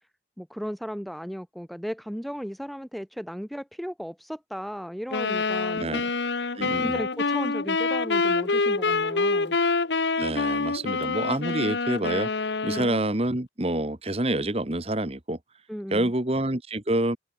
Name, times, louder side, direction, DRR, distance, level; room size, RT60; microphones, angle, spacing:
voice 1, 0.4-6.1 6.8-9.6 12.7-12.9 15.7-16.1, equal, ahead, 0.6 m, -35 dB
sound 1, 5.1-13.1, left 3 dB, 70° left, 1.1 m, -26 dB
voice 2, 6.5-7.0 10.2-12.3 12.6-15.4 15.9-17.2, right 1 dB, 35° right, 1.5 m, -27 dB
open air
head